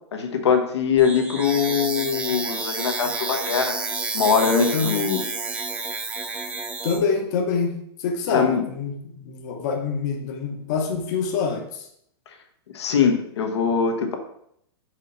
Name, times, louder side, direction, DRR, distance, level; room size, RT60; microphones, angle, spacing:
voice 1, 0.1-3.8 4.1-5.2 8.3-8.6 12.7-14.2, left 6 dB, 80° left, 5 dB, 1.1 m, -22 dB
sound 1, 1.0-7.0, right 4 dB, 10° right, 0.5 m, -30 dB
voice 2, 6.8-7.7 8.0-11.9, left 5 dB, 40° left, 2 dB, 0.9 m, -26 dB
4.9 x 4.0 x 5.5 m, 0.73 s
hypercardioid pair, 165°, 14 cm